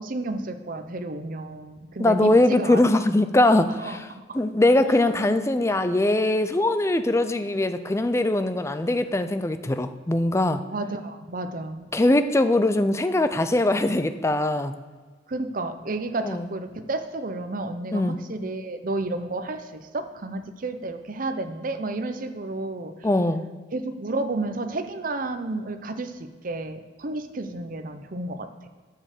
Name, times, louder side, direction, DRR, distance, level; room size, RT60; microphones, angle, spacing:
voice 1, 0.0-2.8 3.8-4.4 10.7-11.9 15.3-22.9 23.7-28.7, right 2 dB, 50° right, 8 dB, 0.7 m, -31 dB
voice 2, 2.0-4.1 4.3-10.6 11.9-14.7 16.2-16.5 17.9-18.2 23.0-23.4, left 1 dB, 15° left, 10 dB, 0.4 m, -21 dB
9.5 x 6.5 x 6.6 m, 1.5 s
head